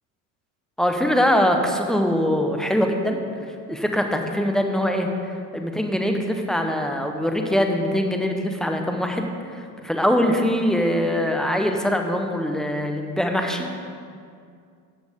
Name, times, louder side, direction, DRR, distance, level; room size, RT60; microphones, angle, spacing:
voice 1, 0.8-3.2 3.7-5.1 5.5-9.3 9.8-13.8, equal, ahead, 4 dB, 0.9 m, -22 dB
13.5 x 7.9 x 3.6 m, 2.3 s
supercardioid pair, 95°, 49 cm